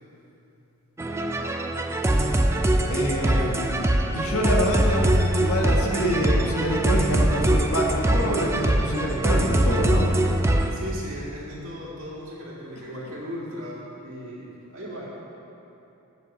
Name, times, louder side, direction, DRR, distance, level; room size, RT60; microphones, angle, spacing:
sound 1, 1.0-10.7, right 1 dB, 10° right, 0.4 m, -22 dB
voice 1, 2.9-10.1 12.7-12.9, equal, 75° left, -1 dB, 1.4 m, -26 dB
voice 2, 10.7-15.1, equal, 65° right, -5 dB, 2.1 m, -37 dB
7.1 x 6.9 x 7.3 m, 2.9 s
head